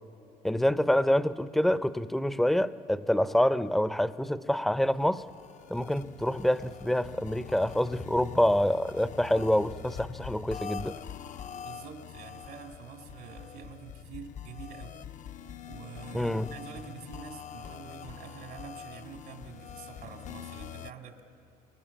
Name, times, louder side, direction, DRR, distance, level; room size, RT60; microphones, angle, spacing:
voice 1, 0.4-5.2 5.7-11.0 16.1-16.5, left 1 dB, ahead, 13 dB, 0.6 m, -26 dB
sound 1, 4.9-20.9, left 9 dB, 45° left, 0.6 m, -44 dB
voice 2, 11.6-15.1 15.7-21.2, right 7 dB, 80° right, 3 dB, 2.5 m, -46 dB
29.5 x 24.0 x 7.3 m, 2.7 s
cardioid pair, 110°, 17 cm